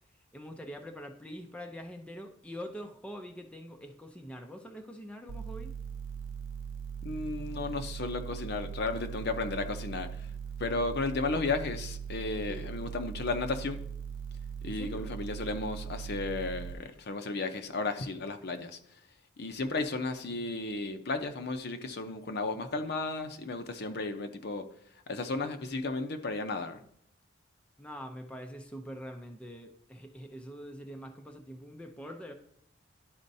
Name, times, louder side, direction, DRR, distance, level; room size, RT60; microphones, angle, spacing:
voice 1, 0.3-5.8 12.5-12.7 14.6-15.1 27.8-32.3, equal, 5° left, 3 dB, 0.5 m, -44 dB
sound 1, 5.3-16.7, right 7 dB, 70° right, 0.4 m, -40 dB
voice 2, 7.0-10.1 10.6-13.8 14.6-18.8 19.4-24.7 25.1-26.8, left 3 dB, 55° left, 7 dB, 0.7 m, -34 dB
11.5 x 4.3 x 2.7 m, 0.69 s
head